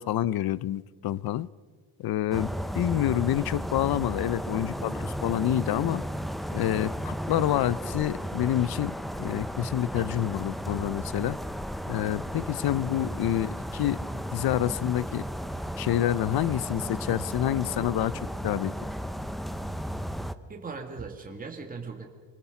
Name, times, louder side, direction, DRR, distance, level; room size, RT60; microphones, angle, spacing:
voice 1, 0.0-1.5 2.0-6.0 6.5-11.4 11.9-14.0 14.3-15.3 15.8-18.7, left 12 dB, 55° left, 0.6 m, -28 dB
sound 1, 2.3-20.3, equal, ahead, 0.6 m, -34 dB
voice 2, 9.9-10.3 20.5-22.1, right 4 dB, 20° right, 1.7 m, -39 dB
25.5 x 20.0 x 5.8 m
cardioid pair, 130°, 45 cm